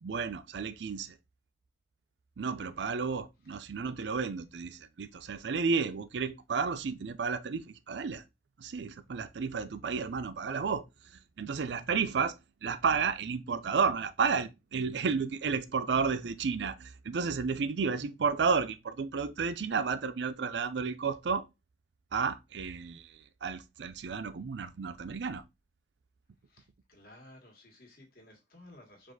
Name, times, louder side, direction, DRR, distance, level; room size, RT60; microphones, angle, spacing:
voice 1, 0.0-1.2 2.4-8.2 8.6-21.5 22.1-25.4, right 5 dB, 75° right, 0.5 m, -32 dB
voice 2, 26.5-29.1, left 1 dB, 55° left, 1.7 m, -55 dB
4.9 x 2.5 x 3.9 m
head